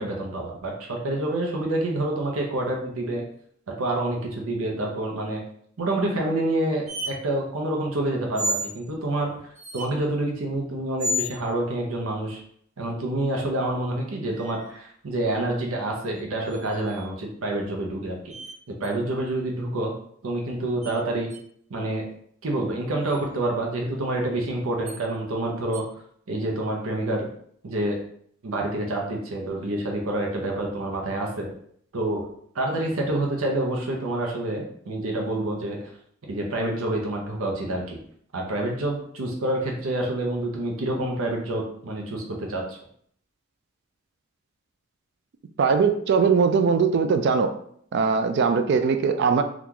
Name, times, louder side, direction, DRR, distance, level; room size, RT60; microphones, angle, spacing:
voice 1, 0.0-3.2 3.7-5.4 5.8-12.4 12.8-18.3 18.8-19.9 20.2-21.3 21.7-22.0 22.4-25.8 26.3-27.3 27.6-28.0 28.4-31.5 31.9-32.3 32.5-35.8 36.3-38.0 38.3-42.8, right 1 dB, 85° right, 0 dB, 0.7 m, -27 dB
sound 1, 6.9-7.1 8.3-8.8 9.5-9.9 11.0-11.4 14.3-14.8 16.5-17.1 18.3-18.5 18.8-18.9 20.8-20.9 21.3-21.4 23.0-23.2 24.9-25.0 25.7-25.8, equal, 35° right, 0.7 m, -31 dB
voice 2, 45.6-47.5 47.9-49.4, right 5 dB, 55° right, 8 dB, 0.3 m, -20 dB
2.9 x 2.4 x 3.6 m, 0.64 s
head